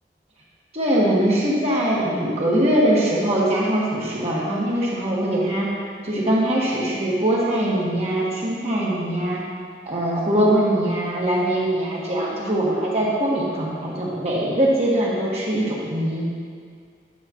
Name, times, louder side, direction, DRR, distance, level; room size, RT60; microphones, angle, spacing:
voice 1, 0.7-5.7 6.0-9.4 9.8-16.3, right 1 dB, 35° right, -5 dB, 1.7 m, -22 dB
11.0 x 7.6 x 3.1 m, 2.1 s
head